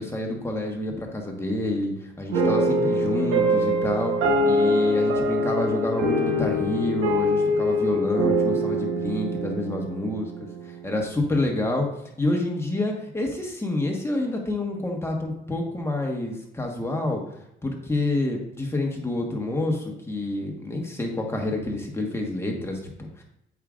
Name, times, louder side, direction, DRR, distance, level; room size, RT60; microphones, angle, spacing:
voice 1, 0.0-10.5 10.8-11.9 12.2-17.2 17.6-23.2, left 2 dB, 10° left, 1 dB, 1.3 m, -28 dB
sound 1, 2.3-10.9, equal, 80° right, 1.3 m, -24 dB
7.9 x 4.8 x 2.5 m, 0.80 s
cardioid pair, 90°, 20 cm